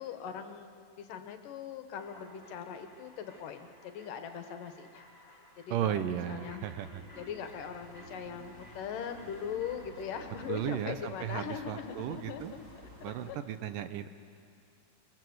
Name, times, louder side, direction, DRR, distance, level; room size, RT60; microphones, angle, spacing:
voice 1, 0.0-12.6 13.3-13.4, left 8 dB, 70° left, 7 dB, 2.6 m, -41 dB
sound 1, 2.0-10.7, left 1 dB, 10° left, 3.4 m, -57 dB
voice 2, 5.7-7.0 10.5-12.5 13.0-14.1, right 10 dB, 75° right, 10 dB, 2.3 m, -35 dB
sound 2, 6.9-13.3, right 1 dB, 20° right, 3.5 m, -53 dB
26.5 x 21.5 x 7.9 m, 2.4 s
omnidirectional pair, 4.2 m